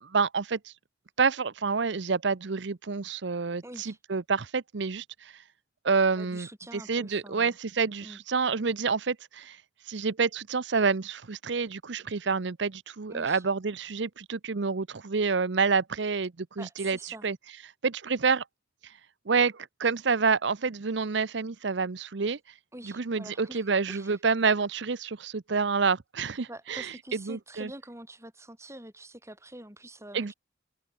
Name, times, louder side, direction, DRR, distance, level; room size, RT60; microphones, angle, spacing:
voice 1, 0.0-0.7 1.2-5.3 5.8-9.6 9.9-17.0 17.2-17.4 17.8-18.4 19.3-22.4 22.8-27.7 30.1-30.3, right 5 dB, 65° right, 0.7 m, -28 dB
voice 2, 3.6-4.0 6.1-7.6 8.0-8.2 13.1-13.4 16.6-17.3 22.7-24.2 26.5-30.3, right 1 dB, 15° right, 7.6 m, -46 dB
head